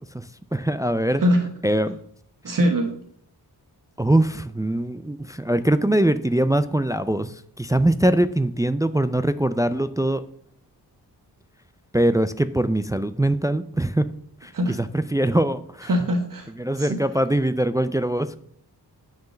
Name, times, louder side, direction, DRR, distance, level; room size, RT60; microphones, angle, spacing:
voice 1, 0.0-1.2 1.6-2.0 4.0-10.2 11.9-14.1 14.4-15.9 16.6-18.4, right 1 dB, 10° right, 12 dB, 0.3 m, -22 dB
voice 2, 2.4-2.9 14.5-14.8 15.9-16.5 16.8-17.0, equal, 55° right, 4 dB, 1.2 m, -22 dB
9.4 x 4.6 x 7.0 m, 0.63 s
wide cardioid pair, 140°, 40 cm